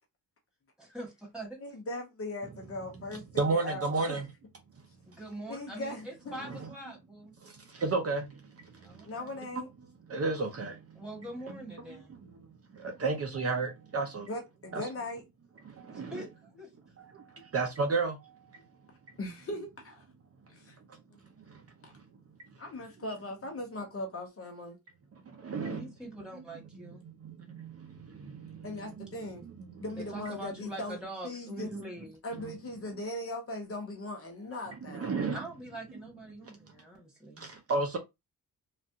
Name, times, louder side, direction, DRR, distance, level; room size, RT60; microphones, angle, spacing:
voice 1, 0.8-1.6 5.1-7.3 8.8-9.3 10.9-12.2 15.9-16.7 25.5-27.0 30.0-32.2 35.3-37.5, right 1 dB, ahead, 1.8 m, -43 dB
voice 2, 1.6-4.2 5.5-6.4 9.0-9.7 14.3-15.2 19.2-20.0 20.5-20.8 21.1-21.2 22.6-24.8 28.6-29.4 29.7-31.0 31.2-31.7 32.2-35.2, left 1 dB, 40° left, 0.8 m, -39 dB
voice 3, 3.4-4.3 6.4-6.7 7.4-9.1 9.5-9.6 10.1-11.0 11.5-11.6 11.9-12.4 12.7-14.3 14.7-14.9 15.6-16.2 17.0-18.9 21.4-21.6 21.9-22.0 25.3-25.9 26.1-26.2 27.0-29.1 29.4-29.8 34.9-35.4 36.4-36.5 37.4-38.0, right 3 dB, 45° right, 0.7 m, -34 dB
3.2 x 2.4 x 2.7 m
cardioid pair, 120°, 35 cm